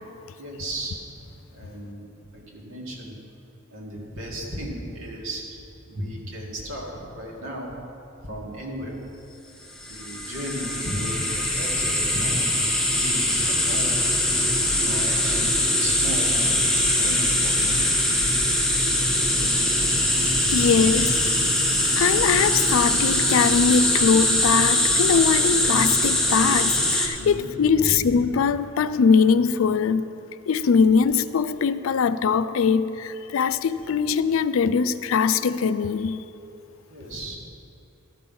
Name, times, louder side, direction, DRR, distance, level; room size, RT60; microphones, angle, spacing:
voice 1, 0.4-3.1 3.7-7.8 8.2-9.1 9.9-14.0 14.5-18.0 20.2-21.0 27.2-28.2 36.9-37.4, equal, 85° right, 1.9 m, -35 dB
sound 1, 9.8-27.1, left 1 dB, ahead, 0.9 m, -22 dB
voice 2, 20.5-21.1 22.0-30.1 30.5-36.2, left 6 dB, 80° left, 0.4 m, -21 dB
12.5 x 6.0 x 5.4 m
head